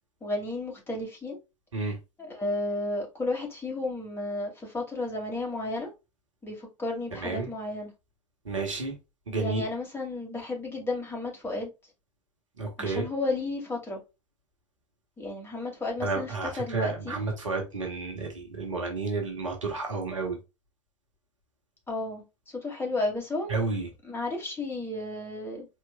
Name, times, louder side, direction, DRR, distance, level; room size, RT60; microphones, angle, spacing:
voice 1, 0.2-1.4 2.2-5.9 6.4-7.9 9.3-11.7 12.8-14.0 15.2-17.2 21.9-22.2 22.6-23.6 24.0-25.7, left 2 dB, 15° left, 2.3 m, -33 dB
voice 2, 8.4-8.9 9.3-9.6 12.6-13.0 16.0-20.4 23.5-23.9, right 3 dB, 80° right, 1.4 m, -31 dB
4.6 x 3.8 x 2.3 m
figure-of-eight pair, 80°, 16 cm